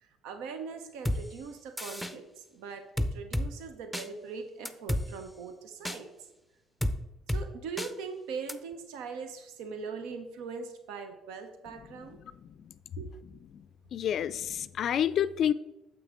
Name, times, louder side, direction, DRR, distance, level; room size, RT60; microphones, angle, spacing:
voice 1, 0.0-6.1 7.3-12.2 13.0-13.1, right 5 dB, 85° right, 7 dB, 0.8 m, -41 dB
sound 1, 1.1-1.2 1.8-2.1 3.0-3.5 3.9-4.1 4.7-5.0 5.9-6.0 6.8-7.0 7.3-7.4 7.8-7.9 8.5-8.6, left 1 dB, ahead, 0.6 m, -30 dB
voice 2, 13.9-15.5, left 9 dB, 60° left, 15 dB, 0.3 m, -29 dB
7.4 x 6.0 x 3.7 m, 0.96 s
supercardioid pair, 80°, 0 cm